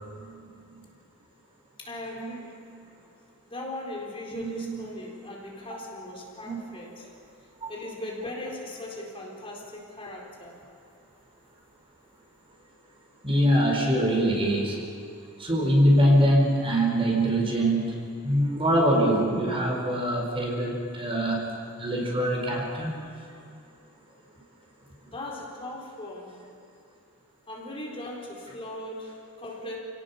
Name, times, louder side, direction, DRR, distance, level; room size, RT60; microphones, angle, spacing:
voice 1, 1.8-2.6 3.5-7.1 7.4-10.6 25.0-26.4 27.5-29.8, left 1 dB, 25° left, -2 dB, 4.1 m, -39 dB
voice 2, 4.4-4.8 6.4-6.6 7.6-7.7 13.2-14.8 15.4-17.9 18.2-21.4 21.8-23.0, equal, 25° right, 0 dB, 4.6 m, -23 dB
29.0 x 18.5 x 7.2 m, 2.5 s
head